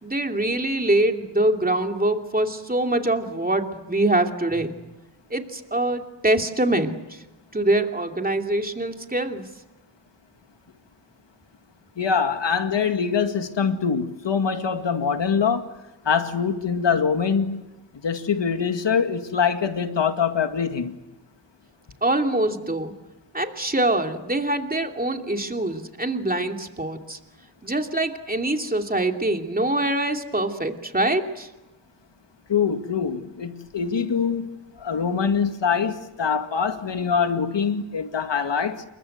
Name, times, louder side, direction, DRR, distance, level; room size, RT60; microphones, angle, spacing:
voice 1, 0.0-4.8 5.3-7.2 7.5-9.5 22.0-22.9 23.3-27.2 27.6-31.5, right 1 dB, 20° right, 2.8 m, -24 dB
voice 2, 12.0-15.7 16.1-17.6 18.0-21.0 32.5-38.8, left 6 dB, 75° left, 2.1 m, -24 dB
28.5 x 23.5 x 8.0 m
wide cardioid pair, 90°, 44 cm